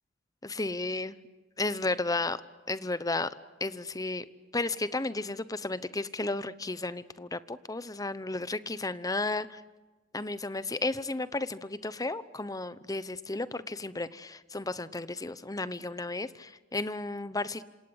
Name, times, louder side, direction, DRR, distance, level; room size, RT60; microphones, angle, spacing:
voice 1, 0.4-1.2 1.6-2.4 2.7-3.3 3.6-4.2 4.5-9.6 10.1-17.7, left 2 dB, 20° left, 15 dB, 0.9 m, -33 dB
27.0 x 26.5 x 8.1 m, 1.2 s
head